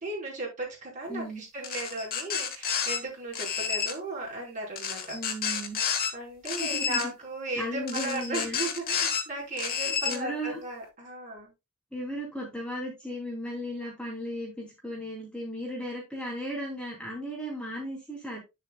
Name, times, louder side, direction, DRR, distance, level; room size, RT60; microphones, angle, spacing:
voice 1, 0.0-5.2 6.1-11.5, right 2 dB, 35° right, -2 dB, 4.9 m, -36 dB
voice 2, 1.1-1.4 5.1-5.8 6.6-7.1 7.6-8.6 9.8-10.6 11.9-18.4, equal, 5° left, -3 dB, 3.1 m, -36 dB
sound 1, 1.6-3.0 3.3-3.9 4.8-6.1 6.4-7.1 7.9-9.2 9.6-10.2, left 7 dB, 45° left, 1.4 m, -30 dB
9.7 x 7.2 x 2.4 m, 0.23 s
head